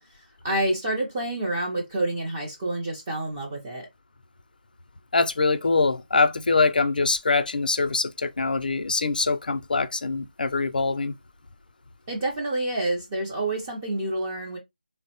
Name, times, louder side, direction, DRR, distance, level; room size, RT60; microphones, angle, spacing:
voice 1, 0.0-3.9 12.1-14.6, right 1 dB, 15° right, 0.4 m, -28 dB
voice 2, 5.1-11.1, left 3 dB, 60° left, 0.4 m, -23 dB
3.5 x 2.0 x 2.7 m
figure-of-eight pair, 170°, 5 cm